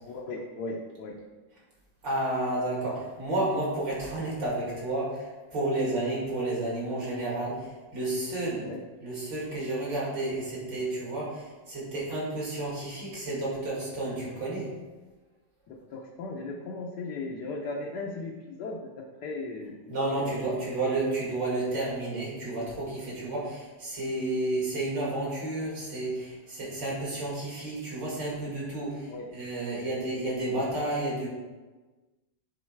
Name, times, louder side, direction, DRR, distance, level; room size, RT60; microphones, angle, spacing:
voice 1, 0.0-1.2 8.6-8.8 15.7-20.4 29.1-29.3, left 3 dB, 65° left, -1 dB, 1.2 m, -37 dB
voice 2, 2.0-8.7 9.0-14.7 19.9-31.3, right 2 dB, 70° right, -5 dB, 3.1 m, -31 dB
9.6 x 4.0 x 4.5 m, 1.3 s
omnidirectional pair, 2.1 m